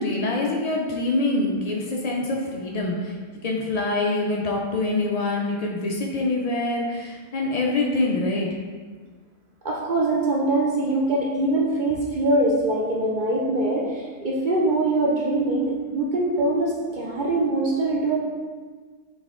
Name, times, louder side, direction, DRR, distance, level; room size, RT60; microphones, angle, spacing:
voice 1, 0.0-3.2 3.4-8.5, left 2 dB, 80° left, -1 dB, 0.3 m, -25 dB
voice 2, 9.6-18.2, right 2 dB, 55° right, -3 dB, 0.6 m, -23 dB
4.0 x 3.4 x 3.6 m, 1.5 s
omnidirectional pair, 1.3 m